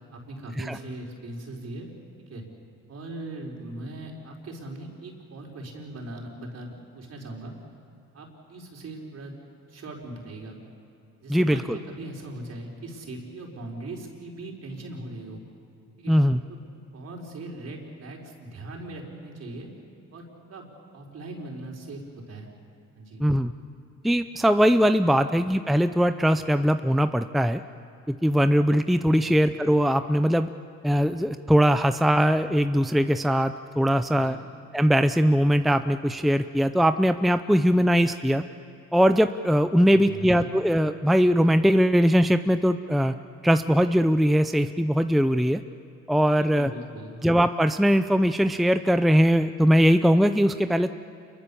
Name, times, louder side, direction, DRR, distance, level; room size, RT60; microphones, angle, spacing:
voice 1, 0.1-1.9 2.2-2.4 2.9-7.5 8.1-9.4 9.7-10.6 11.2-15.4 16.0-16.1 16.5-16.6 16.9-19.7 20.1-22.5 23.0-23.2 25.1-25.3 29.2-29.4 34.1-34.4 39.9-40.5 46.4-47.2, right 2 dB, 55° right, 0 dB, 4.7 m, -40 dB
voice 2, 16.1-16.4 23.2-23.5 24.0-27.6 28.1-30.5 30.8-34.4 34.7-38.4 38.9-43.1 43.4-45.6 46.1-46.7 47.2-50.9, equal, ahead, 9 dB, 0.6 m, -21 dB
27.5 x 22.5 x 7.1 m, 2.6 s
cardioid pair, 90°, 30 cm